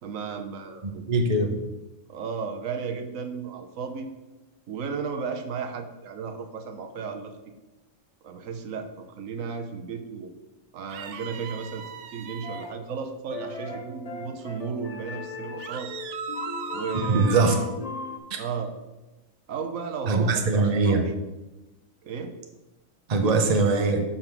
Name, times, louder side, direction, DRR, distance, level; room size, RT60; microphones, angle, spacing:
voice 1, 0.0-1.0 2.1-4.1 4.7-7.4 8.2-10.3 10.7-15.9 16.7-17.6 18.4-18.7 19.5-21.1 22.0-22.3, right 5 dB, 90° right, 6 dB, 1.2 m, -34 dB
voice 2, 1.1-1.5 17.1-17.5 18.3-18.4 20.1-21.1 23.1-24.0, right 3 dB, 35° right, 4 dB, 0.8 m, -21 dB
sound 1, 10.9-12.7 15.6-17.7, right 8 dB, 70° right, 0.9 m, -37 dB
sound 2, 12.4-12.9 13.3-18.2, left 4 dB, 40° left, 0.5 m, -38 dB
5.8 x 5.3 x 5.9 m, 1.0 s
omnidirectional pair, 1.3 m